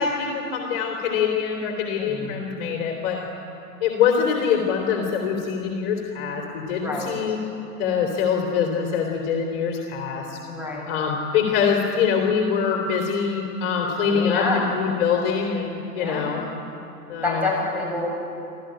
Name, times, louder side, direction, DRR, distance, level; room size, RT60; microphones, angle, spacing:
voice 1, 0.0-3.2 3.8-7.4 7.8-10.4 10.9-16.4 17.1-17.5, left 6 dB, 40° left, 1 dB, 3.3 m, -24 dB
voice 2, 2.0-2.3 6.7-7.1 10.5-10.9 14.0-14.6 15.9-16.3 17.2-18.1, left 3 dB, 5° right, -4 dB, 7.8 m, -28 dB
26.5 x 14.5 x 9.0 m, 2.9 s
figure-of-eight pair, 105°, 46 cm